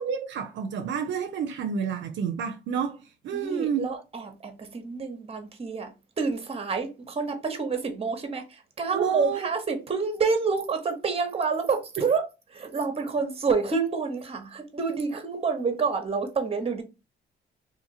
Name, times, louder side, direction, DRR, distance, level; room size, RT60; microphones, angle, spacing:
voice 1, 0.0-3.9 8.9-9.5, right 7 dB, 70° right, 0.5 m, -29 dB
voice 2, 3.3-12.2 12.5-16.8, right 5 dB, 30° right, 0.9 m, -28 dB
2.8 x 2.6 x 2.7 m
cardioid pair, 90°, 20 cm